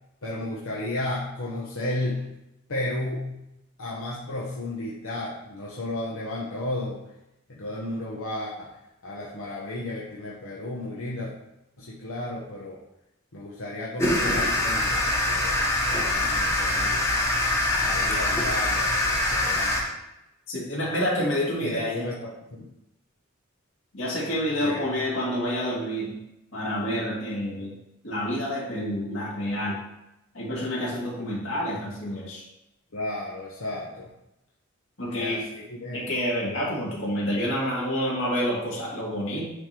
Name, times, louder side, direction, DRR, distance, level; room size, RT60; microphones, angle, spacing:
voice 1, 0.2-2.2 2.7-3.3 3.8-7.0 7.5-8.7 9.0-11.3 11.8-12.8 13.3-17.0 17.8-19.9 21.6-22.6 24.6-24.8 32.9-34.1 35.1-36.1, left 1 dB, 90° left, -5 dB, 1.0 m, -33 dB
sound 1, 14.0-19.8, left 1 dB, 15° left, 1.0 m, -24 dB
voice 2, 20.5-22.1 23.9-26.1 26.5-27.7 28.0-29.8 30.3-32.4 35.0-35.4 35.9-39.5, equal, 70° left, -5 dB, 2.2 m, -28 dB
9.4 x 3.4 x 2.9 m, 0.88 s
head